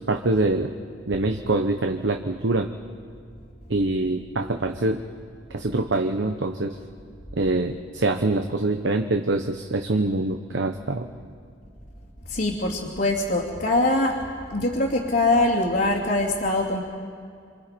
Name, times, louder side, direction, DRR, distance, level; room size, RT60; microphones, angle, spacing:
voice 1, 0.1-0.7 1.1-2.7 3.7-5.0 5.5-6.8 7.3-11.1, right 2 dB, 85° right, 5 dB, 1.0 m, -24 dB
voice 2, 12.3-14.2 14.5-16.8, left 2 dB, 60° left, -4 dB, 2.7 m, -23 dB
27.0 x 27.0 x 5.3 m, 2.3 s
head